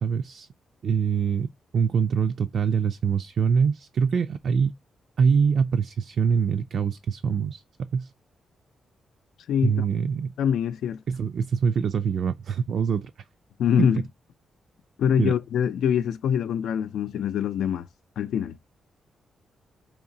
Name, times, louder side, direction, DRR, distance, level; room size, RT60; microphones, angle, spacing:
voice 1, 0.0-0.5 0.8-1.5 1.7-4.7 5.2-8.1 9.6-10.3 11.1-13.1 13.8-13.9 15.2-15.3, right 6 dB, 55° right, 0.3 m, -24 dB
voice 2, 9.5-9.8 10.4-11.0 13.6-14.0 15.0-17.9 18.2-18.8, left 8 dB, 90° left, 0.3 m, -24 dB
4.8 x 2.9 x 2.6 m
wide cardioid pair, 170°, 0 cm